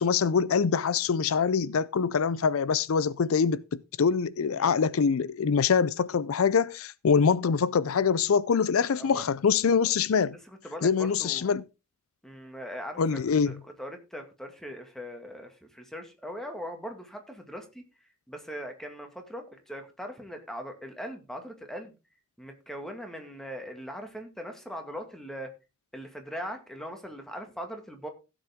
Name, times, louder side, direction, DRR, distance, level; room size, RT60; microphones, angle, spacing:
voice 1, 0.0-10.4 10.8-11.6 13.0-13.5, left 6 dB, 85° left, 0.5 m, -24 dB
voice 2, 10.5-11.5 12.2-17.8 18.3-21.9 22.4-25.5 25.9-28.1, equal, ahead, 2.0 m, -40 dB
16.0 x 7.2 x 3.6 m
head